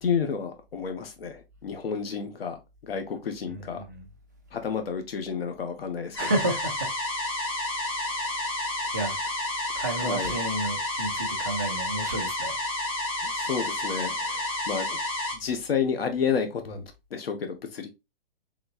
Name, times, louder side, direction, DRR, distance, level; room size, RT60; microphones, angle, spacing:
voice 1, 0.0-2.6 2.8-3.8 4.5-6.2 10.0-10.3 13.2-15.0 15.3-16.8 17.1-17.9, left 6 dB, 80° left, 1.0 m, -30 dB
voice 2, 3.5-4.1 6.2-6.9 8.9-9.2 9.7-12.6, right 2 dB, 20° right, 0.4 m, -31 dB
sound 1, 6.2-15.4, left 1 dB, 25° left, 0.8 m, -30 dB
4.0 x 3.7 x 2.4 m
hypercardioid pair, 180°, 29 cm